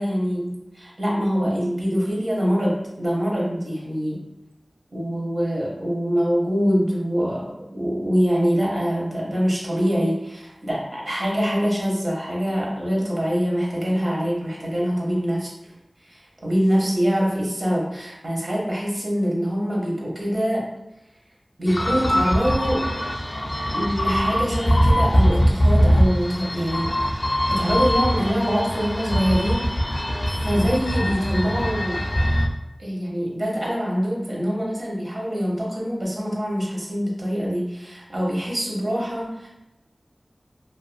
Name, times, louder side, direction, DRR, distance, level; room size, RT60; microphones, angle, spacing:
voice 1, 0.0-4.2 4.9-15.5 16.1-20.7 21.6-23.0 23.7-26.9 27.3-29.7 30.4-32.0 32.8-39.5, equal, 60° right, -4 dB, 0.8 m, -24 dB
sound 1, 21.7-32.5, equal, 45° left, 0.3 m, -22 dB
2.5 x 2.4 x 2.5 m, 0.92 s
wide cardioid pair, 60°, 0 cm